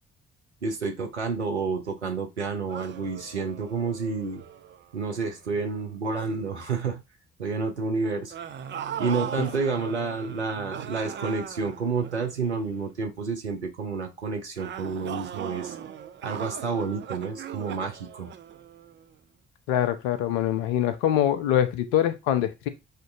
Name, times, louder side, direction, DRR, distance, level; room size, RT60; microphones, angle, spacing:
voice 1, 0.6-4.4 4.9-7.0 7.4-8.3 9.0-15.7 16.2-18.3, right 4 dB, 90° right, 3 dB, 0.5 m, -29 dB
sound 1, 2.7-5.8 6.2-6.5 8.3-12.9 14.6-19.1, right 8 dB, 35° right, 0.5 m, -39 dB
voice 2, 19.7-22.7, left 11 dB, 65° left, 9 dB, 0.6 m, -24 dB
6.4 x 2.6 x 2.4 m, 0.24 s
figure-of-eight pair, 40°, 33 cm